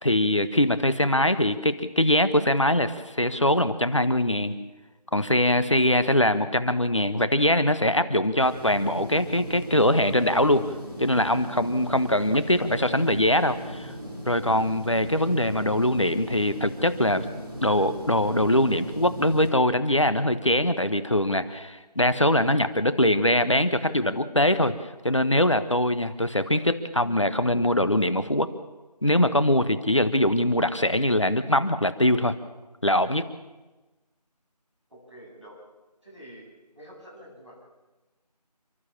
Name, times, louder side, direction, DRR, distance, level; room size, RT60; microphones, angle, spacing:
voice 1, 0.0-4.5 5.1-10.7 11.0-13.9 14.3-17.2 17.6-24.7 25.0-28.5 29.0-32.3 32.8-33.3, left 1 dB, 45° left, 11 dB, 1.3 m, -22 dB
sound 1, 8.4-19.5, equal, 35° right, 6.1 m, -38 dB
voice 2, 34.9-35.6 36.0-36.5 36.7-37.7, equal, ahead, -24 dB, 5.5 m, -47 dB
29.5 x 12.5 x 7.4 m, 1.1 s
figure-of-eight pair, 175°, 21 cm